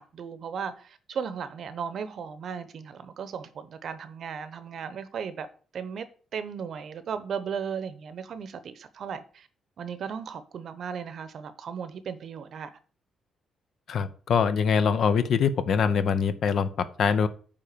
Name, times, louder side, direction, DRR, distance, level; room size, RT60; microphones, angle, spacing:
voice 1, 0.0-5.5 5.7-6.1 6.3-9.5 9.8-12.7, right 7 dB, 50° right, 0.8 m, -36 dB
voice 2, 13.9-17.3, left 6 dB, 55° left, 0.7 m, -24 dB
9.0 x 3.7 x 6.8 m
cardioid pair, 145°, 0 cm